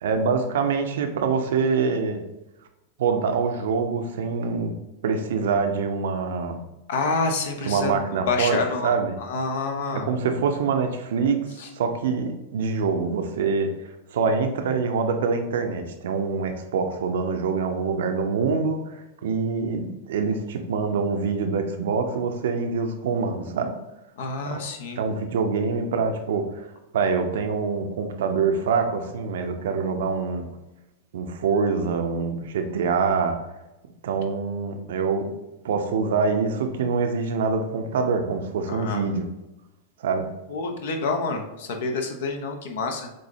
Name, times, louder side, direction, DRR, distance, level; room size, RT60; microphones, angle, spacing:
voice 1, 0.0-2.2 3.0-4.7 5.0-6.6 7.7-9.1 9.9-11.4 11.7-23.7 24.4-24.6 25.0-26.7 26.9-30.4 31.1-33.4 34.0-35.3 35.6-39.3 40.0-40.3, right 5 dB, 60° right, 6 dB, 0.6 m, -25 dB
voice 2, 6.9-7.9 8.3-8.9 9.2-10.1 11.6-11.7 24.2-25.0 38.7-39.0 40.5-43.1, left 4 dB, 55° left, 4 dB, 0.7 m, -27 dB
7.2 x 2.7 x 2.7 m, 0.97 s
figure-of-eight pair, 90°, 0 cm